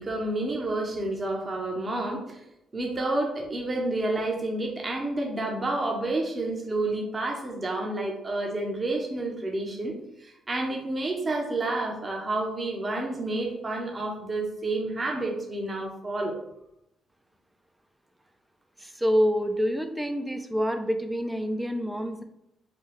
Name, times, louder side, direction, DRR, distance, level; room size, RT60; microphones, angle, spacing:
voice 1, 0.0-2.4 2.7-9.9 10.2-16.4, right 2 dB, 30° right, 1 dB, 0.8 m, -29 dB
voice 2, 18.8-22.2, equal, 10° right, 7 dB, 0.4 m, -27 dB
4.2 x 2.3 x 3.3 m, 0.82 s
cardioid pair, 90°, 0 cm